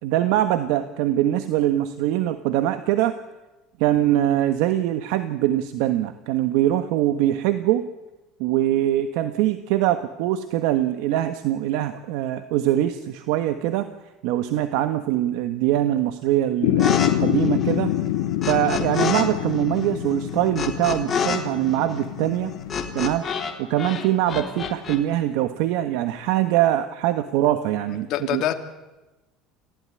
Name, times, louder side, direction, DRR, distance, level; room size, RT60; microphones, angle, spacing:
voice 1, 0.0-3.2 3.8-7.9 8.4-13.9 14.2-17.9 18.4-22.5 22.9-23.3 23.6-28.4, right 13 dB, 75° right, 10 dB, 1.4 m, -23 dB
sound 1, 16.6-23.1, left 13 dB, 90° left, 1.7 m, -26 dB
sound 2, 16.8-17.1 17.4-19.2 19.5-23.5 23.8-25.0, left 6 dB, 25° left, 3.3 m, -28 dB
voice 2, 28.0-28.5, left 12 dB, 55° left, 5 dB, 2.7 m, -26 dB
29.0 x 16.0 x 10.0 m, 1.1 s
cardioid pair, 140°, 0 cm